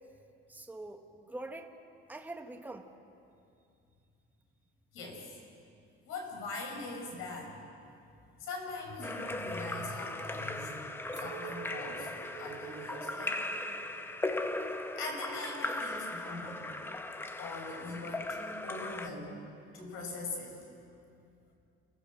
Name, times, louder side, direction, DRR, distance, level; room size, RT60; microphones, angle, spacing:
voice 1, 0.5-1.7 2.1-2.9, right 2 dB, 10° right, 4 dB, 1.3 m, -44 dB
voice 2, 4.9-5.2 6.1-7.6 8.4-10.9 11.2-13.5 15.0-16.7 17.4-19.4 19.7-20.6, left 3 dB, 90° left, 1 dB, 6.1 m, -41 dB
Splash splatter / Drip / Trickle dribble, 9.0-19.1, left 2 dB, 10° left, 0.8 m, -38 dB
Chink clink, 11.1-16.5, right 9 dB, 55° right, 2.1 m, -49 dB
27.5 x 17.0 x 7.7 m, 2.5 s
cardioid pair, 165°, 21 cm